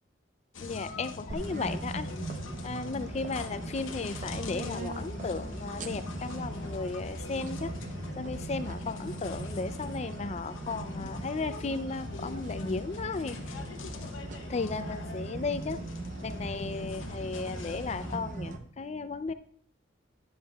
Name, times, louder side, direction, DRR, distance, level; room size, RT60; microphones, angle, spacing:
sound 1, 0.5-18.2, left 3 dB, 85° left, 0.8 m, -42 dB
voice 1, 0.6-2.1 2.6-7.7 8.2-13.4 14.5-15.8 16.2-19.3, left 4 dB, 35° left, 12 dB, 0.4 m, -35 dB
sound 2, 1.3-18.6, right 2 dB, 40° right, 0.7 m, -40 dB
10.0 x 7.5 x 2.3 m, 0.64 s
head